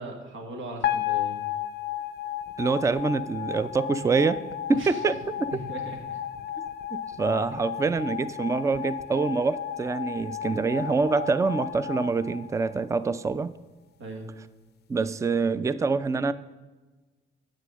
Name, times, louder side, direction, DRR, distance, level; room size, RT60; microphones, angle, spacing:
voice 1, 0.0-1.4 4.7-5.0 5.5-6.2 14.0-14.3, right 1 dB, 80° right, 2 dB, 1.8 m, -38 dB
sound 1, 0.8-13.1, left 11 dB, 55° left, 0.5 m, -33 dB
voice 2, 2.6-4.4 4.7-5.6 6.6-13.5 14.9-16.3, right 4 dB, 15° right, 15 dB, 0.4 m, -26 dB
8.5 x 6.4 x 6.2 m, 1.2 s
cardioid pair, 90°, 20 cm